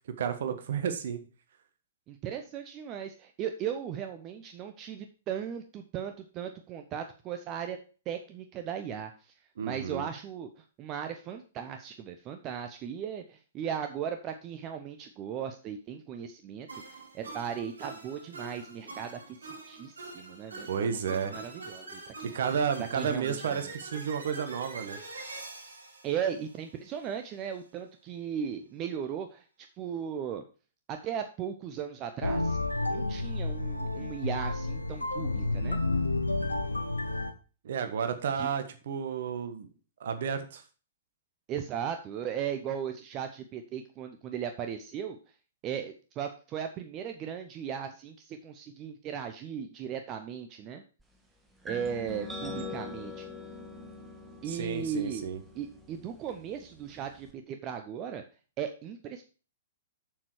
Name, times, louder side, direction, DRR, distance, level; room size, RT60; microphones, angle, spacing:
voice 1, 0.1-1.2 9.6-10.1 20.7-21.4 22.2-25.0 37.6-39.7 40.0-40.6 54.5-55.4, right 7 dB, 55° right, 8 dB, 1.3 m, -32 dB
voice 2, 2.1-7.8 8.1-9.3 9.6-22.3 22.8-23.7 26.0-29.4 29.8-30.4 30.9-32.6 32.9-35.8 38.4-38.5 41.5-45.2 45.6-50.8 51.6-53.3 54.4-55.3 55.5-58.2 58.6-59.2, right 8 dB, 25° right, 7 dB, 0.8 m, -37 dB
sound 1, 16.7-27.1, right 3 dB, 70° right, 4.1 m, -45 dB
sound 2, 32.2-37.3, left 2 dB, 80° left, 1.0 m, -30 dB
sound 3, 51.7-57.3, left 3 dB, 5° right, 1.4 m, -43 dB
7.2 x 6.9 x 4.7 m, 0.36 s
figure-of-eight pair, 115°, 0 cm